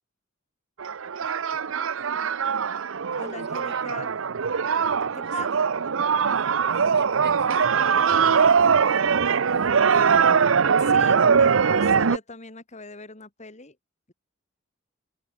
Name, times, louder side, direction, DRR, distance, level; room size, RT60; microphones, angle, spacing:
sound 1, 0.8-12.2, right 6 dB, 75° right, 0.7 m, -21 dB
voice 1, 3.2-4.1 5.1-5.5 10.8-13.8, left 3 dB, 35° left, 2.9 m, -41 dB
voice 2, 5.1-5.6 6.3-10.0, right 3 dB, 60° right, 2.9 m, -44 dB
head